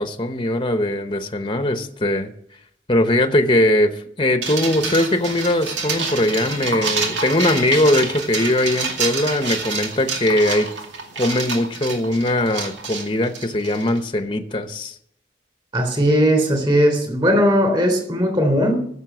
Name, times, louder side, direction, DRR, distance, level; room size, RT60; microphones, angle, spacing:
voice 1, 0.0-2.3 2.9-3.9 4.2-10.7 11.1-14.9, left 1 dB, 25° left, 8 dB, 0.9 m, -20 dB
sound 1, 4.4-14.0, right 4 dB, 85° right, 2.3 m, -27 dB
voice 2, 15.7-18.8, equal, 25° right, 4 dB, 3.5 m, -18 dB
15.5 x 6.9 x 7.0 m, 0.68 s
head